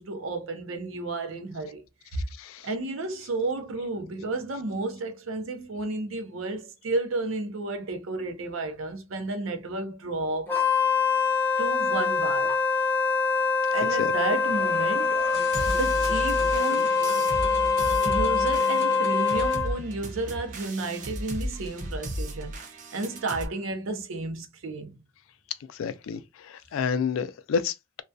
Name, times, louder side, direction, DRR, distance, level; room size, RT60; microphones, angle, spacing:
voice 1, 0.0-1.8 2.1-2.2 2.6-10.6 11.6-12.5 13.7-15.2 15.6-17.0 18.0-25.0, right 2 dB, 85° right, 0.6 m, -32 dB
voice 2, 2.4-2.7 14.0-14.1 25.7-28.0, left 6 dB, 80° left, 0.3 m, -30 dB
Wind instrument woodwind instrument, 10.5-19.8, left 5 dB, 10° left, 0.5 m, -24 dB
sound 1, 14.0-19.6, left 3 dB, 55° left, 0.8 m, -39 dB
sound 2, 15.5-23.5, equal, 40° right, 0.4 m, -35 dB
2.2 x 2.2 x 2.5 m
head